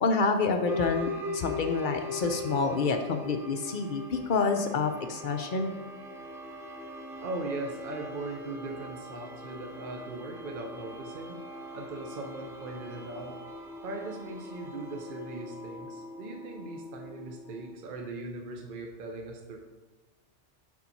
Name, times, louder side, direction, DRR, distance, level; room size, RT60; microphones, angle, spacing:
voice 1, 0.0-5.7, left 4 dB, 55° left, 6 dB, 0.6 m, -28 dB
sound 1, 0.6-17.8, left 2 dB, 5° right, 0.5 m, -41 dB
voice 2, 7.2-11.4 11.7-13.4 13.8-19.6, right 2 dB, 50° right, 2 dB, 0.9 m, -39 dB
7.1 x 4.5 x 4.2 m, 1.3 s
omnidirectional pair, 1.2 m